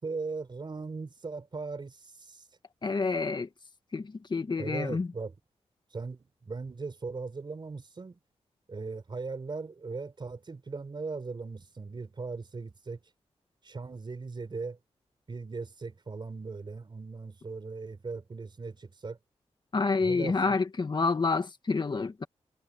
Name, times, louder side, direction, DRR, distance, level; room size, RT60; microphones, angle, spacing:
voice 1, 0.0-2.4 4.6-5.3 5.9-8.2 8.7-13.0 13.6-14.8 15.3-19.2 20.0-20.6, right 4 dB, 45° right, 4.5 m, -38 dB
voice 2, 2.8-3.5 3.9-5.1 19.7-22.3, left 4 dB, 40° left, 1.6 m, -28 dB
cardioid pair, 85°, 11 cm